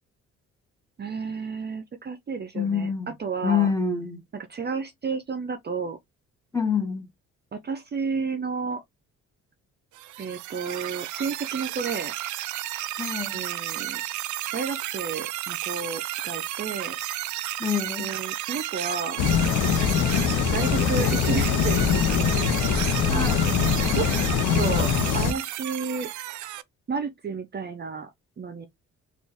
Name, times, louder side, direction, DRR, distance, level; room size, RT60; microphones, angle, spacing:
voice 1, 1.0-3.7 4.3-6.0 7.5-8.8 10.2-12.1 13.3-14.0 14.5-17.0 18.0-19.2 20.5-22.5 23.1-24.1 24.6-26.1 26.9-28.1 28.4-28.7, right 5 dB, 35° right, 0.6 m, -32 dB
voice 2, 2.5-3.1 3.4-4.2 6.5-7.0 13.0-13.4 17.6-18.1 23.1-23.4, left 6 dB, 10° left, 1.3 m, -26 dB
sound 1, 9.9-26.6, right 15 dB, 75° right, 0.5 m, -32 dB
sound 2, 19.2-25.3, left 7 dB, 80° left, 0.8 m, -23 dB
4.1 x 2.5 x 3.5 m
cardioid pair, 90°, 30 cm